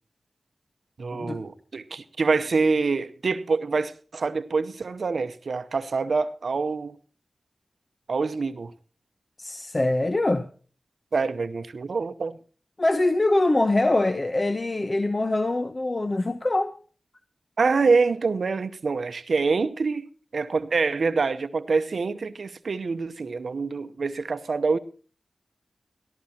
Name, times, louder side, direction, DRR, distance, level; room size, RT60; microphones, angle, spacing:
voice 1, 1.0-7.0 8.1-8.7 11.1-12.4 17.6-20.1 20.3-24.8, right 4 dB, 75° right, 0.7 m, -25 dB
voice 2, 9.4-10.4 12.8-16.8, left 2 dB, 40° left, 0.9 m, -23 dB
19.0 x 14.0 x 2.8 m
cardioid pair, 40°, 0 cm